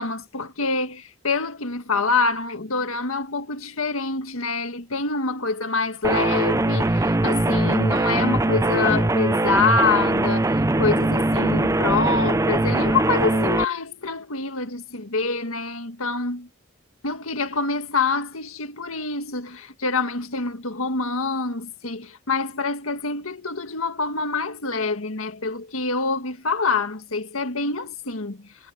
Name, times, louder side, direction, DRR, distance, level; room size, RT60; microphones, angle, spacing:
voice 1, 0.0-10.5 10.8-16.5 17.0-28.4, left 3 dB, 90° left, 1.8 m, -26 dB
sound 1, 6.0-13.7, right 2 dB, 15° right, 0.5 m, -21 dB
head